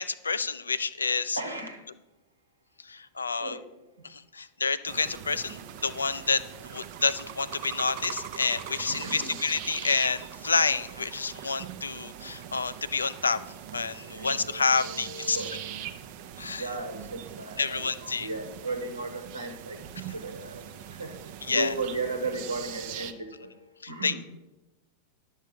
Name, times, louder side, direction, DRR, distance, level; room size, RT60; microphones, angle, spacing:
voice 1, 0.0-1.4 2.8-3.6 4.0-6.4 6.6-13.4 13.7-15.4 16.4-16.6 17.6-18.3 21.5-21.7 23.8-24.2, left 4 dB, 75° left, 15 dB, 0.4 m, -28 dB
voice 2, 1.4-1.9 3.4-3.6 4.0-4.1 8.9-9.4 13.8-15.8 16.6-24.2, right 3 dB, 80° right, 6 dB, 1.2 m, -36 dB
sound 1, 4.8-23.1, right 10 dB, 50° right, 0.6 m, -42 dB
11.0 x 6.4 x 5.1 m, 1.0 s
figure-of-eight pair, 90°, 0 cm